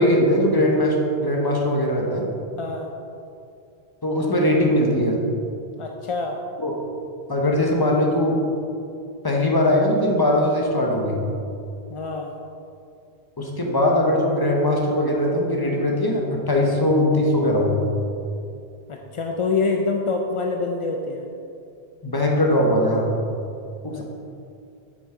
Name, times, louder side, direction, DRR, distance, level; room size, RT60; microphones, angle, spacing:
voice 1, 0.0-2.3 4.0-5.2 6.6-6.7 7.3-8.4 9.2-11.2 13.4-17.8 22.0-23.2 23.8-24.0, left 1 dB, 25° left, -1 dB, 0.9 m, -20 dB
voice 2, 2.6-2.9 5.8-6.4 11.9-12.3 18.9-21.2 23.9-24.0, left 4 dB, 50° left, 2 dB, 0.3 m, -26 dB
7.9 x 6.2 x 3.7 m, 2.5 s
omnidirectional pair, 1.1 m